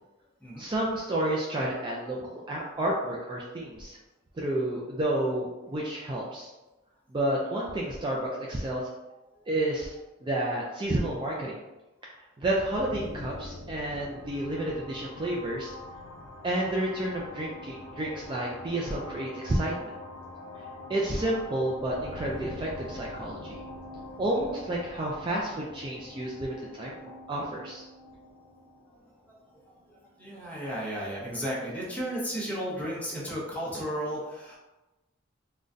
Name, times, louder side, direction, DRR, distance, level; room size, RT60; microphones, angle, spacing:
voice 1, 0.6-4.0 4.4-6.5 7.1-8.8 9.5-9.9 10.2-11.6 12.4-15.7 16.4-19.9 20.9-23.6 24.2-27.0 27.3-27.8, right 1 dB, 25° right, -4 dB, 0.3 m, -30 dB
sound 1, 12.6-30.2, left 2 dB, 85° left, 0.5 m, -44 dB
voice 2, 30.2-34.6, equal, 5° left, -6 dB, 0.8 m, -33 dB
3.8 x 2.2 x 2.5 m, 1.1 s
head